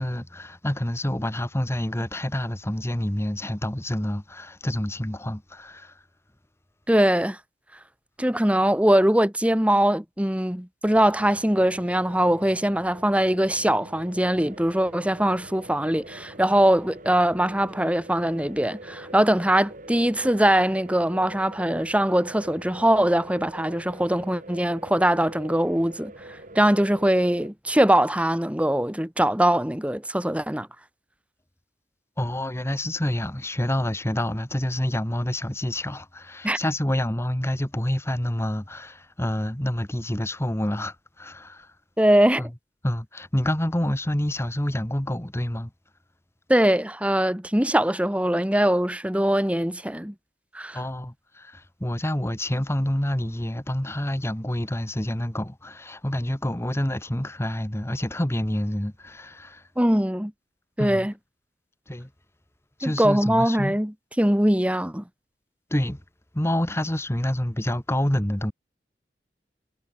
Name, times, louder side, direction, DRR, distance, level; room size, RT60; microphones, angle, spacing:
voice 1, 0.0-6.0 32.2-41.7 42.4-42.6 42.8-45.7 50.7-59.7 60.8-61.1 61.9-62.1 62.8-63.8 65.7-66.0 66.3-68.5, left 1 dB, 15° left, 1.6 m, -28 dB
voice 2, 6.9-7.4 8.2-26.1 26.6-30.7 36.4-36.6 42.0-42.5 46.5-50.1 50.5-50.8 59.8-60.3 60.8-61.1 62.8-65.0, right 1 dB, 10° right, 1.8 m, -22 dB
sound 1, 10.8-27.5, right 1 dB, 50° right, 4.0 m, -44 dB
head